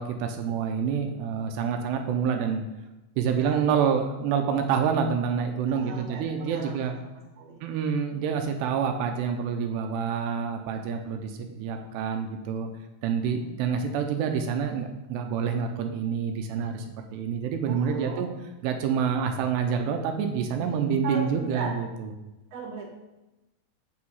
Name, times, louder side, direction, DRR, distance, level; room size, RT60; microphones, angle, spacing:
voice 1, 0.0-2.6 3.2-7.0 7.6-12.7 13.0-16.9 17.1-18.3 18.6-22.1, right 7 dB, 80° right, 5 dB, 2.8 m, -27 dB
voice 2, 3.2-3.7 5.7-6.9 7.3-7.6 13.2-13.6 17.7-18.3 21.0-21.7 22.5-22.9, right 4 dB, 35° right, -6 dB, 1.3 m, -38 dB
8.4 x 4.9 x 5.5 m, 1.0 s
omnidirectional pair, 5.0 m